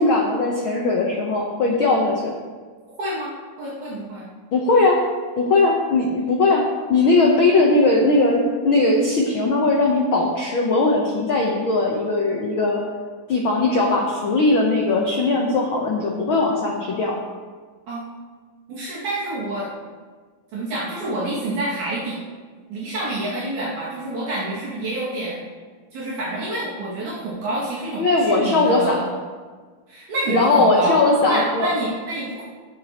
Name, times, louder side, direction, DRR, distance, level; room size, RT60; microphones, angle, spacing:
voice 1, 0.0-2.3 4.5-5.0 5.4-6.6 6.9-12.8 13.3-17.2 28.0-29.0 30.3-31.7, left 3 dB, 85° left, -1 dB, 1.1 m, -19 dB
voice 2, 3.0-3.3 3.6-4.3 17.9-18.0 18.7-19.7 20.5-22.2 22.7-25.4 25.9-29.1 29.9-32.4, right 2 dB, 70° right, -9 dB, 3.5 m, -27 dB
17.0 x 7.3 x 3.0 m, 1.5 s
omnidirectional pair, 3.8 m